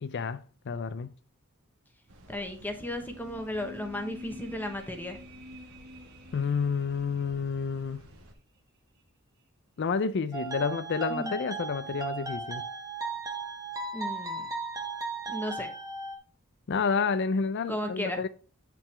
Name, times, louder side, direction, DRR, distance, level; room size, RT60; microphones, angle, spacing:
voice 1, 0.0-1.1 6.3-8.0 9.8-12.6 16.7-18.3, left 5 dB, 55° left, 0.4 m, -30 dB
sound 1, 2.1-8.3, equal, 80° right, 1.4 m, -53 dB
voice 2, 2.3-5.2 11.1-11.4 13.9-14.5 15.3-15.7 17.7-18.3, left 1 dB, 10° left, 0.9 m, -35 dB
sound 2, 2.6-7.9 8.2-8.3, left 1 dB, 45° right, 1.2 m, -48 dB
sound 3, 10.3-16.2, right 4 dB, 15° right, 1.1 m, -36 dB
8.6 x 5.9 x 3.3 m
head